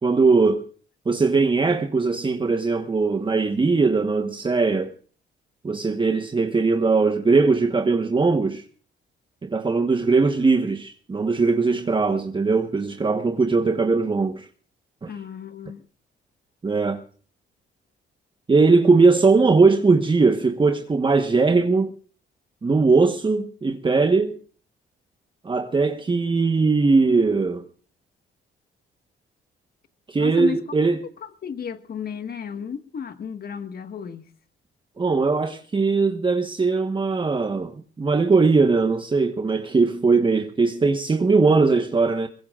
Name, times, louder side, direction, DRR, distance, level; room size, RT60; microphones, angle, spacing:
voice 1, 0.0-0.6 1.0-4.9 5.6-8.6 9.4-14.5 15.0-15.1 16.6-17.0 18.5-21.9 22.6-24.4 25.4-27.6 30.1-31.0 35.0-42.3, right 4 dB, 25° right, 1.2 m, -20 dB
voice 2, 15.1-15.8 30.2-30.8 31.2-34.3, left 7 dB, 50° left, 1.6 m, -33 dB
22.5 x 20.5 x 2.5 m
cardioid pair, 90°, 20 cm